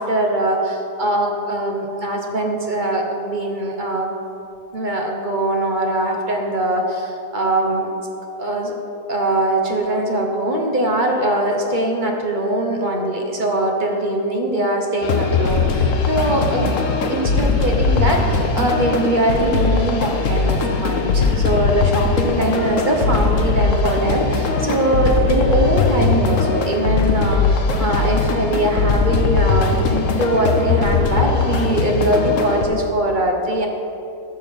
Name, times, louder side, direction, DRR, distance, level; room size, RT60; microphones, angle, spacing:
voice 1, 0.0-4.1 4.7-7.9 8.4-8.7 9.1-16.7 17.0-33.7, right 1 dB, 30° right, 1 dB, 1.2 m, -21 dB
sound 1, 15.0-32.7, left 4 dB, 55° left, 1.2 m, -19 dB
13.5 x 6.2 x 5.4 m, 2.6 s
omnidirectional pair, 1.8 m